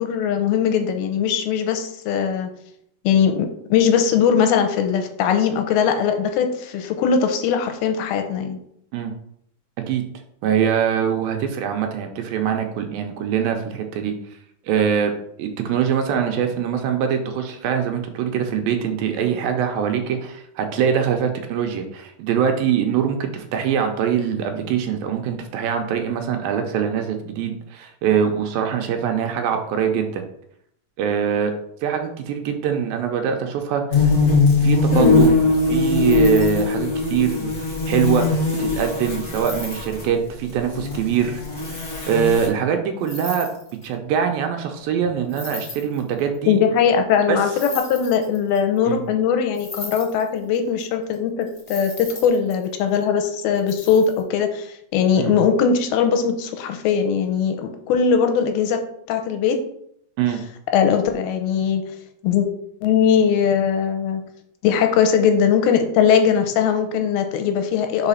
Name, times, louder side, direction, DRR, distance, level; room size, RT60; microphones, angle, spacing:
voice 1, 0.0-2.5 3.0-8.6 34.9-35.2 46.5-58.8 59.1-59.6 60.7-61.8 62.2-62.5 62.8-64.2 64.6-68.1, left 7 dB, 85° left, 6 dB, 2.5 m, -20 dB
voice 2, 10.4-14.1 14.7-15.1 15.4-30.2 31.0-31.5 31.8-34.1 34.6-35.4 35.6-43.5 43.8-46.6 47.3-47.4 48.9-49.0 55.2-55.3 60.2-60.4, right 8 dB, 80° right, 5 dB, 2.3 m, -23 dB
sound 1, 33.9-40.0 40.6-42.5, left 3 dB, 65° left, 0.8 m, -20 dB
sound 2, 35.5-36.8 39.3-40.0 43.0-43.9 45.3-46.3 47.5-48.8 49.5-50.8 51.1-51.2 51.4-53.0 53.5-54.2, left 2 dB, 35° left, 1.1 m, -37 dB
4.9 x 4.9 x 5.5 m, 0.71 s
omnidirectional pair, 4.4 m